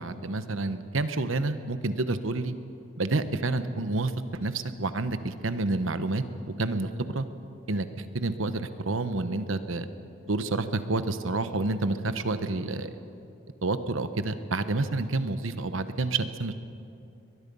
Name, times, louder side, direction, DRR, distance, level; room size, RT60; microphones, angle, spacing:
voice 1, 0.0-2.5 3.0-6.2 6.6-7.3 7.7-9.9 10.3-12.9 13.6-16.5, right 2 dB, 80° right, 11 dB, 1.0 m, -29 dB
22.5 x 21.0 x 5.5 m, 2.7 s
head